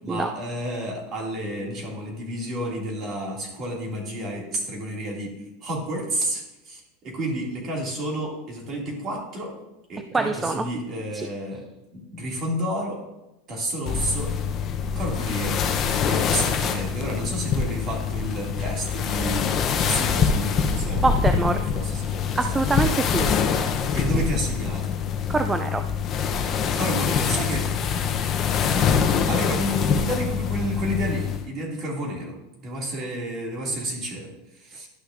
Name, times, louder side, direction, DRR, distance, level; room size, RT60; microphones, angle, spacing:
voice 1, 0.0-9.5 9.9-11.6 11.9-13.0 13.5-14.3 15.0-15.6 16.0-21.0 21.3-22.6 23.9-25.0 26.7-27.7 29.1-34.9, equal, 35° right, -2 dB, 2.4 m, -30 dB
voice 2, 10.1-10.6 11.1-11.3 21.0-21.6 22.4-23.3 25.3-25.8, right 3 dB, 15° right, 7 dB, 0.3 m, -24 dB
sound 1, 13.9-31.4, left 6 dB, 35° left, 0.7 m, -24 dB
11.5 x 6.2 x 2.6 m, 0.94 s
supercardioid pair, 135°, 0 cm